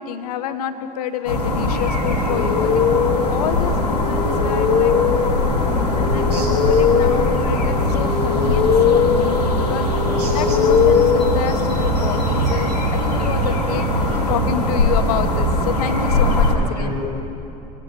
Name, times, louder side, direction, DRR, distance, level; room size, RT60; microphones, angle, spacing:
voice 1, 0.0-2.9 3.3-4.9 6.0-9.9 10.3-16.9, left 9 dB, 70° left, 8 dB, 1.3 m, -28 dB
sound 1, 1.3-16.6, left 1 dB, 90° left, 2.2 m, -20 dB
sound 2, 2.3-12.0, left 7 dB, 40° left, 1.2 m, -21 dB
voice 2, 5.5-6.8 10.0-10.6 14.1-14.2 16.5-17.1, equal, 75° right, -2 dB, 4.3 m, -32 dB
25.5 x 17.0 x 9.2 m, 2.9 s
figure-of-eight pair, 55°, 20 cm